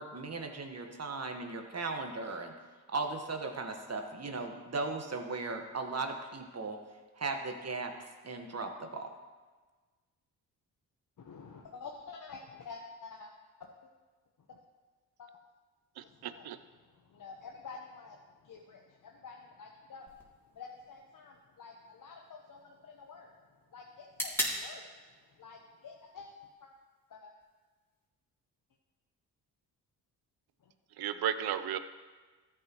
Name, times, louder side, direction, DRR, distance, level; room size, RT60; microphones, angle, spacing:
voice 1, 0.0-2.5 2.9-6.8 7.2-7.9 8.2-9.1, right 3 dB, 40° right, 4 dB, 1.5 m, -37 dB
voice 2, 11.2-13.3 14.5-14.6 15.2-15.3 16.0-20.2 20.5-23.3 23.7-26.3 26.6-26.7 27.1-27.3 30.6-30.7, left 5 dB, 50° left, 1 dB, 1.1 m, -49 dB
voice 3, 16.0-16.6 31.0-31.8, right 9 dB, 65° right, 12 dB, 0.7 m, -34 dB
sound 1, 20.1-28.1, equal, 5° left, 3.3 m, -43 dB
14.0 x 8.7 x 3.1 m, 1.4 s
supercardioid pair, 50°, 41 cm